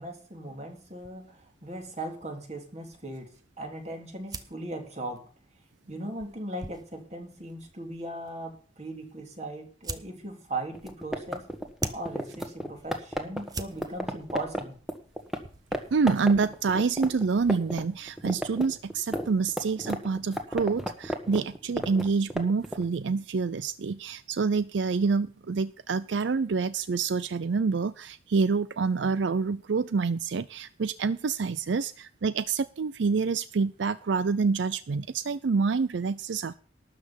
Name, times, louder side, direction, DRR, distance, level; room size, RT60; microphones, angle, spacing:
voice 1, 0.0-5.2 5.9-11.5 11.9-14.7, right 1 dB, 35° right, 3 dB, 3.1 m, -38 dB
sound 1, 1.0-17.8, right 3 dB, 20° right, 0.9 m, -46 dB
sound 2, 10.7-15.4 15.7-15.8 16.1-17.8 18.1-22.8, equal, ahead, 1.5 m, -32 dB
voice 2, 15.9-36.5, right 4 dB, 85° right, 16 dB, 0.5 m, -27 dB
12.5 x 5.8 x 8.8 m, 0.39 s
head